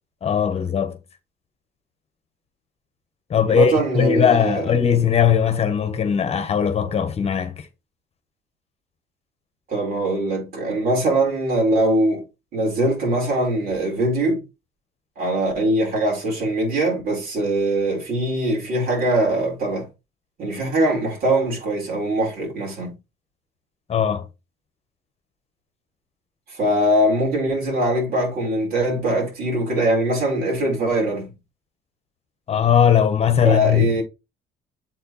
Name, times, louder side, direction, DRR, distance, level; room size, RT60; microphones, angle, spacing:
voice 1, 0.2-1.0 3.3-7.6 23.9-24.3 32.5-33.9, left 8 dB, 40° left, 1.2 m, -19 dB
voice 2, 3.5-4.7 9.7-12.2 12.5-14.4 15.2-19.9 20.4-22.9 26.5-31.3 33.4-34.0, right 1 dB, 60° right, 5.1 m, -22 dB
7.6 x 4.3 x 4.1 m
cardioid pair, 110°, 17 cm